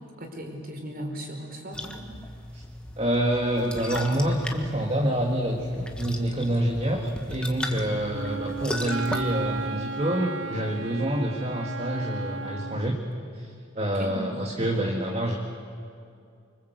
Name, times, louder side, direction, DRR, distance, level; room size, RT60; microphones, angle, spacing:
voice 1, 0.2-2.3 7.7-8.1 13.8-14.2, equal, 45° right, 2 dB, 4.9 m, -38 dB
sound 1, 1.7-9.7, left 1 dB, 5° left, 1.6 m, -37 dB
voice 2, 3.0-13.0 13.3-13.5 13.8-15.3, right 1 dB, 30° right, -1 dB, 2.0 m, -27 dB
sound 2, 5.1-11.2, equal, 70° left, 2.9 m, -47 dB
Wind instrument woodwind instrument, 8.1-12.9, right 4 dB, 65° right, 0.9 m, -35 dB
25.0 x 24.5 x 8.1 m, 2.3 s
head